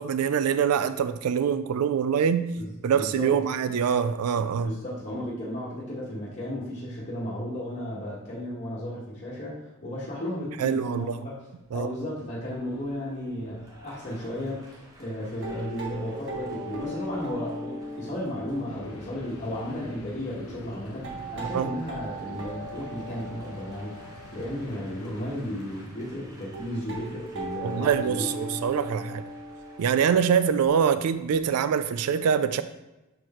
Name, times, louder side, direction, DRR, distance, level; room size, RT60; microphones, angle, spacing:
voice 1, 0.0-2.5 2.8-4.8 10.6-11.1 11.7-11.9 21.5-21.7 27.6-29.2 29.8-32.6, right 7 dB, 80° right, 12 dB, 0.3 m, -24 dB
voice 2, 2.6-3.3 4.6-9.5 9.8-11.4 11.7-23.9 24.3-28.3, equal, 35° left, -9 dB, 1.4 m, -34 dB
Applause, 10.9-30.7, right 1 dB, 15° right, 1.1 m, -52 dB
sound 1, 12.6-12.9 13.3-13.4 13.8-13.9 14.4-14.5 15.2-25.2 25.8-25.9 26.1-26.2 26.5-31.5, equal, 55° right, 1.3 m, -39 dB
sound 2, 18.6-25.9, left 2 dB, 70° left, 0.6 m, -47 dB
6.6 x 4.6 x 4.3 m, 1.0 s
head